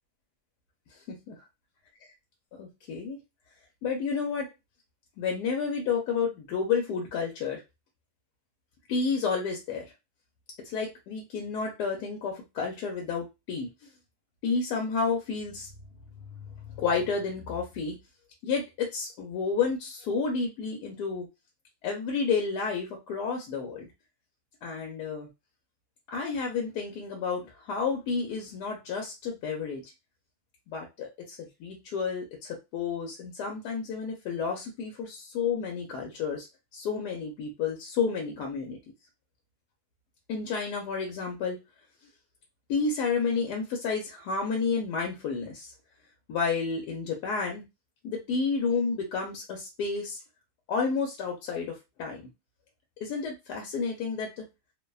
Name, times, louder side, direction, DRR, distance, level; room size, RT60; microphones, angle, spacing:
voice 1, 2.6-3.2 3.8-4.5 5.2-7.6 8.9-9.8 10.6-13.7 14.4-15.7 16.7-18.0 18.4-21.3 21.8-23.9 24.6-25.3 26.1-29.8 30.7-36.5 36.7-38.8 40.3-41.6 42.7-45.7 46.3-47.6 48.0-50.2 50.7-52.2 53.0-54.4, left 5 dB, 85° left, 1 dB, 1.2 m, -30 dB
2.8 x 2.1 x 2.3 m, 0.24 s
omnidirectional pair, 1.7 m